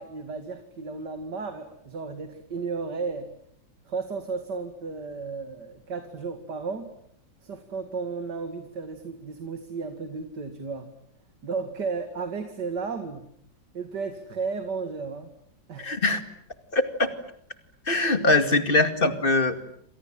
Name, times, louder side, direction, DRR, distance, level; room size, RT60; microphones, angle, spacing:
voice 1, 0.0-3.3 3.9-6.9 7.4-10.9 11.4-13.3 13.7-15.3 15.7-16.0, right 4 dB, 60° right, 7 dB, 2.7 m, -34 dB
voice 2, 15.8-16.2 16.7-17.1 17.9-19.6, left 2 dB, 30° left, 9 dB, 2.4 m, -22 dB
29.0 x 26.0 x 7.6 m, 0.69 s
omnidirectional pair, 2.1 m